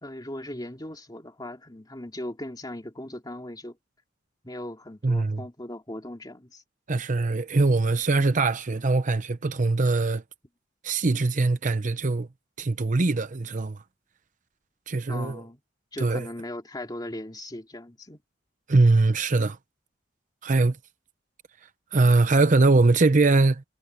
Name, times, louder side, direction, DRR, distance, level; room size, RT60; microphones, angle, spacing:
voice 1, 0.0-3.8 4.4-6.6 15.1-15.6 15.9-18.2, left 1 dB, 20° left, 2.4 m, -38 dB
voice 2, 5.0-5.4 6.9-10.2 10.8-12.3 12.6-13.8 14.9-15.4 16.0-16.3 18.7-19.6 20.4-20.8 21.9-23.6, right 3 dB, 40° right, 0.7 m, -22 dB
head